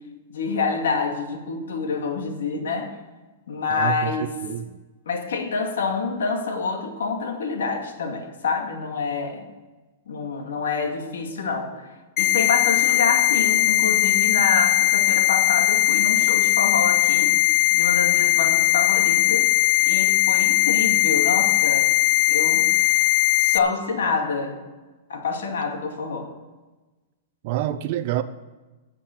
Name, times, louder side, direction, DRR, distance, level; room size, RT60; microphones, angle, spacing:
voice 1, 0.3-2.9 3.5-4.3 5.1-9.5 10.1-11.9 12.2-17.3 17.7-19.5 19.8-21.9 22.3-23.1 23.4-24.6 25.1-26.3, left 4 dB, 85° left, 4 dB, 2.2 m, -27 dB
voice 2, 3.7-4.7 27.4-28.2, right 13 dB, 45° right, 10 dB, 0.6 m, -27 dB
sound 1, 12.2-23.6, left 16 dB, 30° left, 0.9 m, -19 dB
13.0 x 7.5 x 6.7 m, 1.2 s
hypercardioid pair, 155°, 0 cm